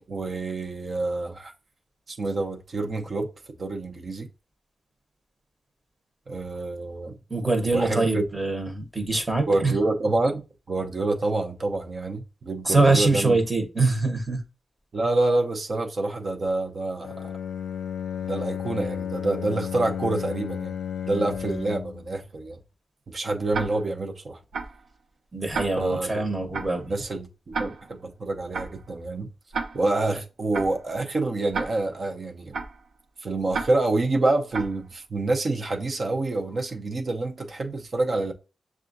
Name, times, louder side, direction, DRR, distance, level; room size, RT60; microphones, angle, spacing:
voice 1, 0.1-1.5 2.1-3.3 3.6-4.3 6.3-7.1 7.7-8.2 9.5-10.4 10.7-13.4 14.9-17.3 18.2-20.7 21.0-22.6 23.1-24.4 25.8-26.3 26.9-29.3 29.7-32.5 33.2-38.3, right 2 dB, 45° right, 0.8 m, -27 dB
voice 2, 7.3-9.7 12.7-14.4 25.3-26.9, right 3 dB, 20° right, 1.0 m, -23 dB
Bowed string instrument, 17.0-22.1, left 9 dB, 70° left, 0.4 m, -33 dB
Tick-tock, 23.5-24.0 24.5-24.9 25.5-26.0 26.5-26.9 27.5-28.0 28.5-28.9 29.5-30.0 30.5-30.9 31.5-32.0 32.5-32.9 33.5-34.0 34.5-34.9, right 4 dB, 80° right, 0.6 m, -33 dB
6.7 x 2.4 x 2.6 m
wide cardioid pair, 115°, 0 cm